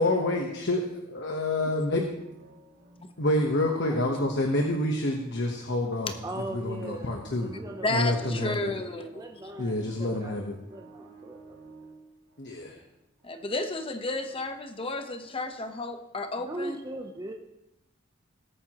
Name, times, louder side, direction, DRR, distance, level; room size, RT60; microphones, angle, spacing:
voice 1, 0.0-2.1 3.2-7.6 7.9-8.7 9.6-10.6 12.4-12.8, left 1 dB, 60° left, 2 dB, 1.2 m, -28 dB
sound 1, 1.7-15.7, right 3 dB, 85° right, 2.8 m, -54 dB
voice 2, 6.2-11.9 16.4-17.3, right 1 dB, 20° right, 2 dB, 0.7 m, -40 dB
voice 3, 7.8-9.2 13.2-16.8, left 2 dB, 30° left, 6 dB, 1.0 m, -32 dB
20.0 x 8.7 x 3.0 m, 0.89 s
head